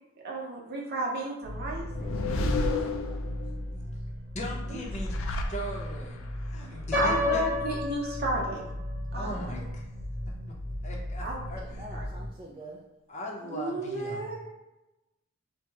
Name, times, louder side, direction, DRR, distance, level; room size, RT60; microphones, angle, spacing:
voice 1, 0.2-2.7 4.7-4.8 6.7-8.6 9.1-9.7 11.2-11.5 11.9-12.1 13.4-14.5, right 2 dB, 55° right, -3 dB, 0.7 m, -33 dB
sound 1, 1.4-12.3, equal, 80° right, 0.8 m, -37 dB
sound 2, 1.6-3.6 4.7-6.2, left 2 dB, 85° left, 0.4 m, -31 dB
voice 2, 2.2-3.4 3.7-3.9 9.1-9.3 11.8-12.8, right 1 dB, 25° right, -3 dB, 0.3 m, -48 dB
voice 3, 4.3-7.4 9.1-9.8 10.5-10.6 10.8-12.0 13.1-14.2, equal, 35° left, -1 dB, 0.6 m, -39 dB
Piano, 6.9-8.9, left 3 dB, 5° left, 1.0 m, -31 dB
2.9 x 2.0 x 3.4 m, 1.0 s
head